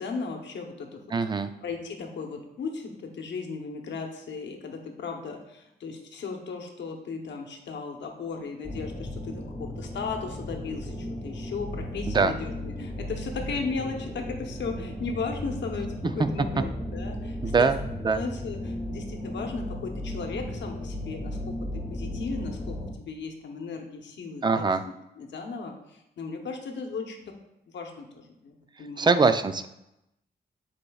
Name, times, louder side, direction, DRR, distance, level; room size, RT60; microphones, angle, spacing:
voice 1, 0.0-17.7 18.1-24.7 25.2-27.3 27.7-29.2, left 4 dB, 85° left, 3 dB, 0.9 m, -36 dB
voice 2, 1.1-1.5 12.1-12.3 16.0-16.3 17.4-17.8 18.0-18.2 24.4-24.8 29.0-29.7, right 4 dB, 25° right, 10 dB, 0.4 m, -23 dB
sound 1, 8.6-22.9, left 1 dB, 25° left, 0.9 m, -35 dB
9.9 x 4.2 x 2.3 m, 0.86 s
wide cardioid pair, 120°, 18 cm